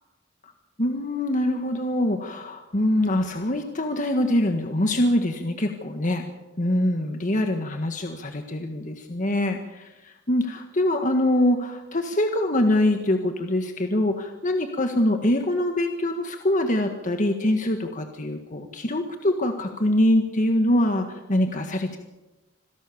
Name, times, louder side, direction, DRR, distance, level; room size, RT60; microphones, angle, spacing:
voice 1, 0.8-6.2 6.6-22.0, left 1 dB, 45° left, 5 dB, 1.7 m, -24 dB
26.5 x 17.0 x 7.2 m, 1.0 s
head